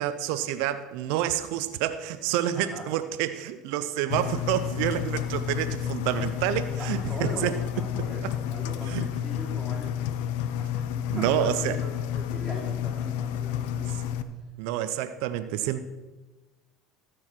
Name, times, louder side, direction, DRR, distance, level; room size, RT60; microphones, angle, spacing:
voice 1, 0.0-7.5 7.9-8.3 8.9-9.1 11.1-11.8 13.8-14.0 14.6-15.8, right 12 dB, 70° right, 11 dB, 0.5 m, -28 dB
Engine, 4.1-14.2, left 10 dB, 75° left, 0.6 m, -30 dB
voice 2, 6.8-10.0 10.6-13.9, left 1 dB, 5° left, -8 dB, 3.4 m, -40 dB
13.5 x 4.7 x 5.9 m, 1.2 s
supercardioid pair, 95°, 0 cm